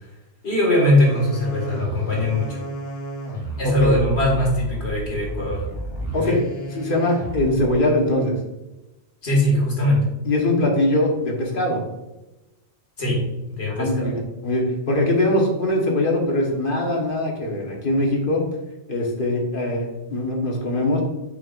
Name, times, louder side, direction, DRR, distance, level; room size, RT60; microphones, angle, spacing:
voice 1, 0.4-2.7 3.6-5.6 6.3-6.4 9.2-10.0 13.0-13.2 13.6-14.1, left 1 dB, 65° left, -3 dB, 2.2 m, -21 dB
sound 1, 1.0-7.8, right 1 dB, 80° left, 1.9 m, -31 dB
voice 2, 3.6-4.0 6.1-8.4 10.2-11.8 13.7-18.4 18.9-21.0, left 1 dB, 50° left, 0 dB, 1.4 m, -22 dB
6.6 x 5.8 x 2.5 m, 1.0 s
omnidirectional pair, 1.2 m